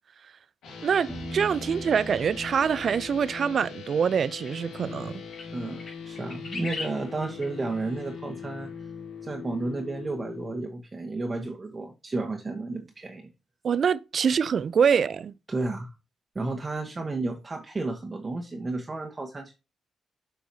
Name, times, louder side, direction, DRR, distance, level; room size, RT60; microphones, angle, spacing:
sound 1, 0.6-10.6, left 6 dB, 85° left, 1.8 m, -41 dB
voice 1, 0.8-5.2 13.6-15.3, right 7 dB, 60° right, 0.4 m, -25 dB
Piano, 1.1-4.8, right 1 dB, ahead, 2.2 m, -42 dB
sound 2, 3.9-4.0 4.5-4.6 5.3-5.5 5.8-7.0 7.4-7.5, left 4 dB, 65° left, 4.3 m, -37 dB
voice 2, 5.5-8.7 9.2-13.3 15.5-15.9 16.3-19.5, right 3 dB, 30° right, 1.1 m, -32 dB
8.2 x 4.6 x 2.7 m
cardioid pair, 75°, 0 cm